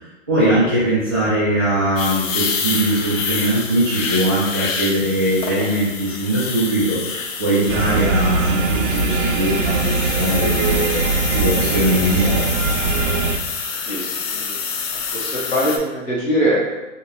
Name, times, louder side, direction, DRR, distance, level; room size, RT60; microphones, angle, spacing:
voice 1, 0.3-7.0 7.4-12.5, right 1 dB, 20° right, -14 dB, 0.4 m, -20 dB
sound 1, 2.0-15.8, left 5 dB, 85° left, 0.6 m, -27 dB
sound 2, 7.7-13.4, right 4 dB, 85° right, 0.5 m, -21 dB
voice 2, 13.8-14.6 15.1-16.6, equal, 45° left, -7 dB, 1.5 m, -22 dB
3.0 x 2.8 x 2.3 m, 1.1 s
hypercardioid pair, 170°, 38 cm